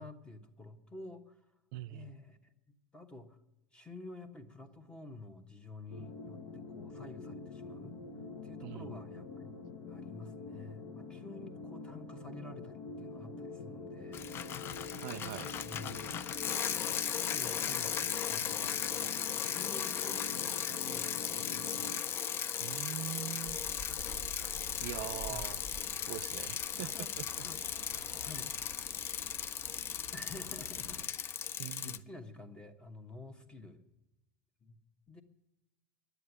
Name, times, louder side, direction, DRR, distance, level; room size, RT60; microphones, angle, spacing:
voice 1, 0.0-1.4 1.9-2.5 2.9-3.4 3.7-7.9 8.4-9.6 9.9-14.8 15.6-16.0 16.9-18.0 18.2-20.2 20.6-22.0 25.1-25.6 26.8-27.1 27.4-27.6 28.2-28.5 30.1-31.4 31.8-33.8 34.6-34.8 35.1-35.2, left 2 dB, 10° left, 1.2 m, -50 dB
voice 2, 1.7-2.1 8.6-8.9 15.0-15.5 22.6-23.6 24.5-25.6 26.1-27.4 31.6-32.0, right 17 dB, 65° right, 0.3 m, -43 dB
sound 1, 5.9-22.0, left 3 dB, 70° left, 1.2 m, -46 dB
Bicycle, 14.1-32.0, left 9 dB, 30° left, 0.4 m, -37 dB
sound 2, 23.4-31.0, equal, 55° left, 2.1 m, -50 dB
11.0 x 8.1 x 9.7 m
supercardioid pair, 125°, 7 cm